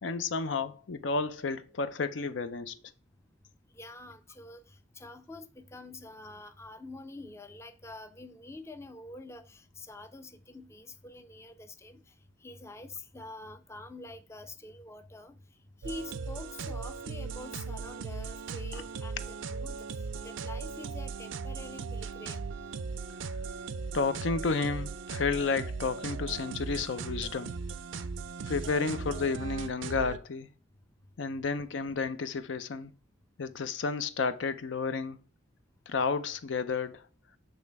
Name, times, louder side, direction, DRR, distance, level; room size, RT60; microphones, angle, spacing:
voice 1, 0.0-2.8 18.7-18.8 23.9-27.5 28.5-30.5 31.2-32.9 33.4-35.2 35.9-37.1, left 4 dB, 75° left, 0.5 m, -31 dB
voice 2, 3.7-12.1 12.4-15.4 15.8-22.5, left 2 dB, 15° left, 0.4 m, -46 dB
sound 1, 15.8-30.2, right 4 dB, 85° right, 0.5 m, -38 dB
8.7 x 3.2 x 4.6 m
head